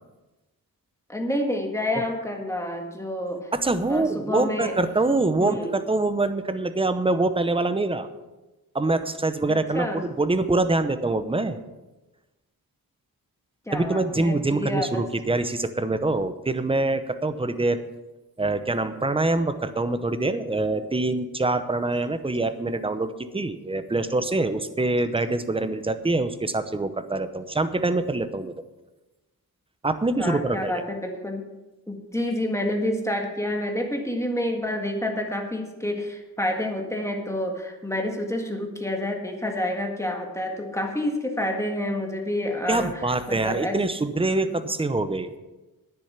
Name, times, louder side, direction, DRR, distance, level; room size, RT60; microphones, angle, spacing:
voice 1, 1.1-3.5 3.9-4.7 5.4-5.7 9.5-10.0 13.6-15.1 30.2-31.4 31.9-43.8 44.5-44.7, left 1 dB, 10° left, 2 dB, 1.8 m, -28 dB
voice 2, 3.5-8.1 8.7-11.6 13.7-17.8 18.4-28.5 29.8-30.8 42.7-45.3, right 2 dB, 15° right, 10 dB, 0.8 m, -25 dB
10.5 x 9.9 x 5.8 m, 1.1 s
wide cardioid pair, 130°, 37 cm